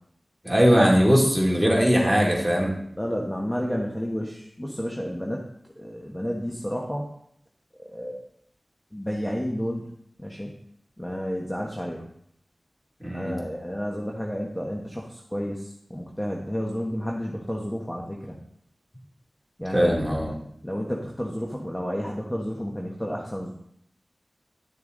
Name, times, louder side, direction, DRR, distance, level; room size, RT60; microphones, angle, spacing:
voice 1, 0.4-2.7 13.0-13.3 19.7-20.3, equal, 5° right, -3 dB, 2.8 m, -20 dB
voice 2, 3.0-5.5 5.8-7.1 7.9-8.2 8.9-9.8 10.2-10.5 11.0-12.1 13.1-18.3 19.6-20.4 20.6-23.5, equal, 15° left, -1 dB, 1.3 m, -31 dB
11.0 x 6.7 x 4.0 m, 0.70 s
wide cardioid pair, 55°, 0 cm